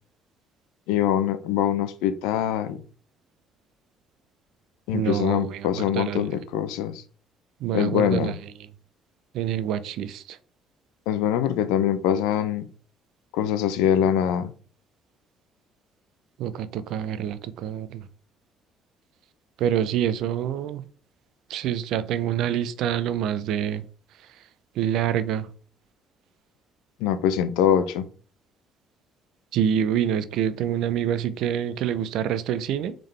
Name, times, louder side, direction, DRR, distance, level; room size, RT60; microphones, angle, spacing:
voice 1, 0.9-2.8 4.9-7.0 7.7-8.4 11.1-12.7 13.3-14.5 27.0-28.1, left 10 dB, 85° left, 0.5 m, -23 dB
voice 2, 4.9-6.3 7.6-8.3 9.3-10.4 16.4-18.0 19.6-20.8 21.5-23.8 24.8-25.5 29.5-33.0, right 9 dB, 75° right, 0.4 m, -26 dB
3.7 x 3.5 x 3.2 m
supercardioid pair, 65°, 0 cm